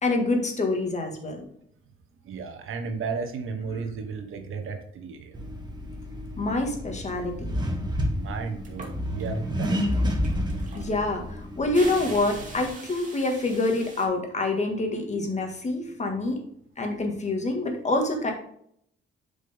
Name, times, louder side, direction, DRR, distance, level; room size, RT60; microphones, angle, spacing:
voice 1, 0.0-1.5 6.4-7.5 10.7-16.4 16.8-18.3, left 2 dB, 35° left, 3 dB, 1.9 m, -26 dB
voice 2, 2.2-5.5 8.2-10.0, right 5 dB, 75° right, 6 dB, 1.2 m, -34 dB
Accelerating revving vroom, 5.3-12.7, equal, 20° right, 1.9 m, -30 dB
sound 1, 8.6-9.3 9.6-14.1, right 3 dB, 40° right, 2.1 m, -42 dB
7.4 x 5.2 x 3.6 m, 0.67 s
cardioid pair, 100°, 21 cm